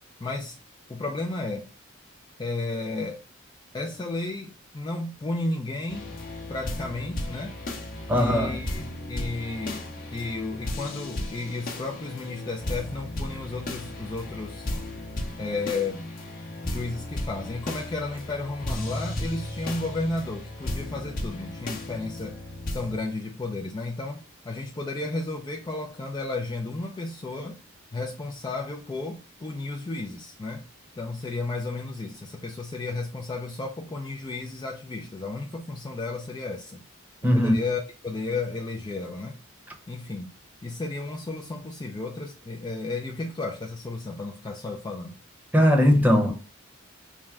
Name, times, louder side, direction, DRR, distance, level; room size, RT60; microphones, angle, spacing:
voice 1, 0.2-0.6 0.9-1.7 2.4-3.2 3.7-6.1 6.5-7.6 8.1-14.7 15.4-16.0 16.7-22.4 22.7-27.6 27.9-30.7 31.0-36.8 37.2-39.4 39.9-40.3 40.6-45.2, left 3 dB, 20° left, 0.4 m, -33 dB
sound 1, 5.9-23.0, left 1 dB, 45° left, 0.8 m, -35 dB
voice 2, 8.1-8.6 37.2-37.6 45.5-46.4, equal, 10° right, 0.8 m, -19 dB
3.6 x 2.1 x 4.3 m
head